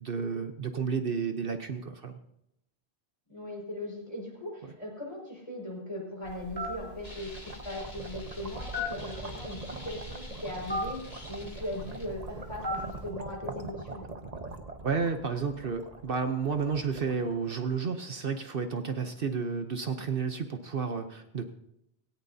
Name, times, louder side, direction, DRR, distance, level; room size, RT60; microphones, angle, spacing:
voice 1, 0.0-2.2 14.8-21.5, right 5 dB, 60° right, 7 dB, 1.0 m, -31 dB
voice 2, 3.3-14.0, left 1 dB, 25° left, -1 dB, 5.1 m, -39 dB
Telephone, 6.3-13.1, left 1 dB, 10° left, 3.8 m, -39 dB
sound 1, 6.7-17.9, right 3 dB, 40° right, 1.1 m, -44 dB
sound 2, 7.0-12.1, left 1 dB, 45° left, 2.7 m, -49 dB
18.0 x 17.5 x 2.7 m, 0.82 s
omnidirectional pair, 1.1 m